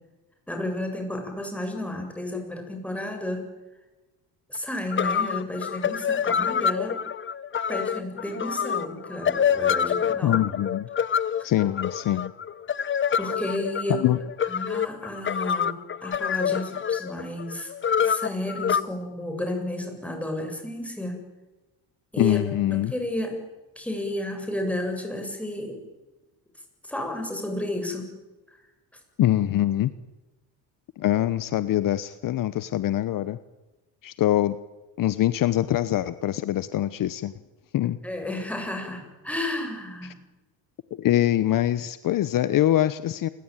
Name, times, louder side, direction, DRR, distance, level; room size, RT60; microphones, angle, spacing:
voice 1, 0.5-3.4 4.5-7.0 7.7-10.4 11.4-11.5 13.2-14.0 14.4-15.7 16.0-17.7 18.0-21.2 22.1-23.3 23.8-25.8 26.8-28.1 28.5-28.6 38.0-40.1, left 1 dB, 5° left, 3 dB, 7.5 m, -32 dB
sound 1, 4.6-4.7 4.9-18.8, left 8 dB, 30° left, 1.0 m, -26 dB
voice 2, 10.2-10.9 11.4-12.3 13.9-14.2 22.2-22.9 29.2-29.9 31.0-33.4 34.0-34.6 35.0-37.3 37.7-38.0 41.0-43.3, left 13 dB, 55° left, 14 dB, 1.1 m, -23 dB
29.0 x 22.5 x 9.1 m, 1.1 s
cardioid pair, 120°, 39 cm